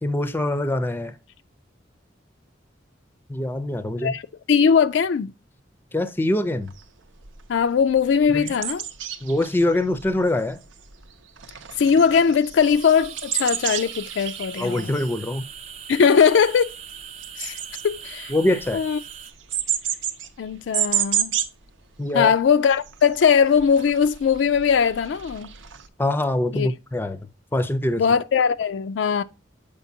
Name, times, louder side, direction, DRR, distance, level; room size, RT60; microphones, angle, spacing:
voice 1, 0.0-1.1 3.3-4.1 5.9-6.7 8.3-8.5 9.2-10.6 14.5-15.4 18.3-18.8 22.0-22.3 26.0-27.2 27.5-28.0, left 1 dB, 10° left, 0.5 m, -24 dB
voice 2, 4.5-5.3 7.5-8.8 11.8-14.9 15.9-16.7 17.4-17.6 17.8-18.3 18.7-19.0 20.4-21.3 22.1-25.5 26.5-26.7 28.0-29.2, left 6 dB, 70° left, 0.4 m, -20 dB
sound 1, 6.7-6.8 7.2-7.4 7.8-11.1 11.4-21.6 22.0-22.1 22.4-25.9, right 10 dB, 85° right, 0.7 m, -31 dB
sound 2, 12.6-19.3, right 8 dB, 35° right, 0.5 m, -41 dB
7.0 x 5.1 x 2.7 m
head